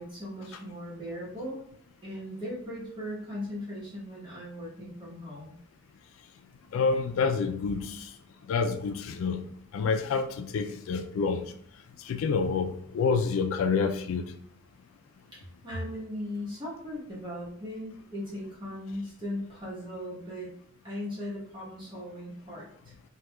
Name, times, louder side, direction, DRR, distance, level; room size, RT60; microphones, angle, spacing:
voice 1, 0.0-1.6 2.0-5.6 15.3-20.5 20.8-22.9, left 1 dB, 25° right, -7 dB, 1.0 m, -38 dB
voice 2, 6.7-8.1 8.5-11.5 12.0-14.2, left 5 dB, 80° left, 8 dB, 0.3 m, -28 dB
4.5 x 2.3 x 2.2 m, 0.63 s
head